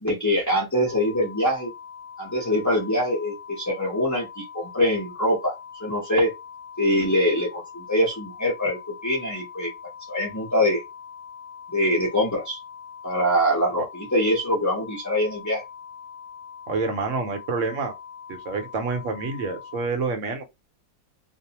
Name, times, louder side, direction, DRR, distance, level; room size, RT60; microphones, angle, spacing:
voice 1, 0.0-1.7 2.2-6.3 6.8-9.7 10.1-10.8 11.7-12.6 13.0-15.6, equal, 20° left, 0.4 m, -24 dB
sound 1, 0.9-19.9, left 7 dB, 70° left, 1.0 m, -42 dB
voice 2, 16.7-17.9 18.3-20.4, right 4 dB, 65° right, 0.9 m, -28 dB
2.5 x 2.0 x 2.8 m
omnidirectional pair, 1.6 m